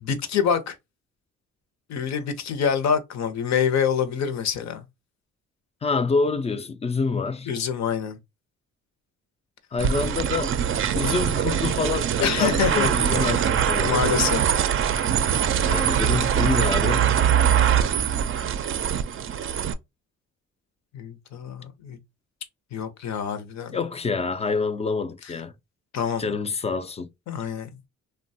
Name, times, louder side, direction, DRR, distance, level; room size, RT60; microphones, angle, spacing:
voice 1, 0.0-0.8 1.9-4.8 7.5-8.2 12.2-12.9 13.3-13.4 13.8-14.4 20.9-22.0 22.7-23.8 25.9-26.2 27.3-27.7, left 7 dB, 65° left, 0.7 m, -26 dB
voice 2, 5.8-7.5 9.7-10.6 10.9-14.4 15.7-17.1 23.7-25.5 26.2-27.1, left 4 dB, 20° left, 0.3 m, -27 dB
sound 1, 9.8-19.7, right 9 dB, 45° right, 0.4 m, -23 dB
2.9 x 2.2 x 2.7 m
cardioid pair, 90°, 30 cm